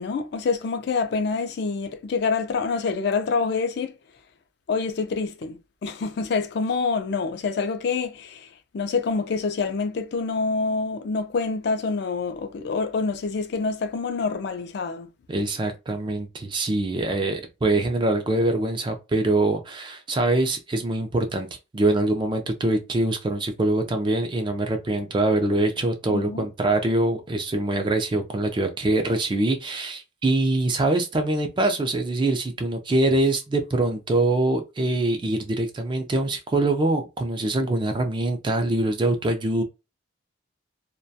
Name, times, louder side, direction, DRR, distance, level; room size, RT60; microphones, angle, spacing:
voice 1, 0.0-3.9 4.7-15.1 26.1-26.5, left 4 dB, 55° left, 0.4 m, -26 dB
voice 2, 15.3-21.5 21.7-39.6, right 2 dB, 25° right, 0.3 m, -24 dB
2.2 x 2.2 x 2.6 m
head